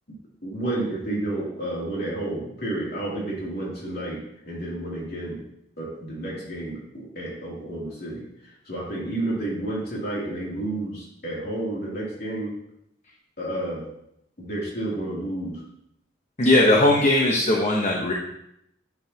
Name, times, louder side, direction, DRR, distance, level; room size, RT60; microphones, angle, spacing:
voice 1, 0.4-5.4 5.8-12.5 13.4-13.8 14.4-15.6, right 1 dB, 55° left, -4 dB, 2.8 m, -31 dB
voice 2, 16.4-18.1, left 1 dB, 40° left, -1 dB, 0.9 m, -19 dB
9.6 x 7.0 x 2.8 m, 0.78 s
head